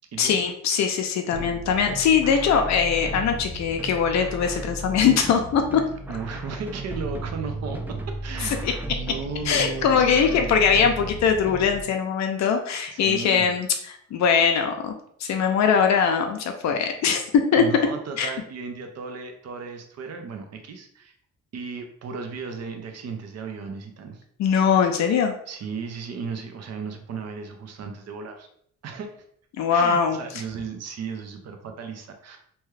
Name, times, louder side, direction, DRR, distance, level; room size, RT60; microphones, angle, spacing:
voice 1, 0.2-5.8 8.4-8.7 9.4-14.9 15.2-17.6 18.2-18.3 24.4-25.3 29.6-30.2, left 6 dB, 65° left, 5 dB, 0.5 m, -21 dB
sound 1, 1.3-11.8, right 1 dB, 5° right, 0.3 m, -35 dB
voice 2, 6.1-8.5 8.9-10.5 12.9-13.5 17.6-21.1 21.5-24.2 25.5-28.5 28.8-29.2 29.7-32.4, right 5 dB, 60° right, 5 dB, 0.6 m, -35 dB
2.8 x 2.3 x 3.2 m, 0.66 s
cardioid pair, 90°, 30 cm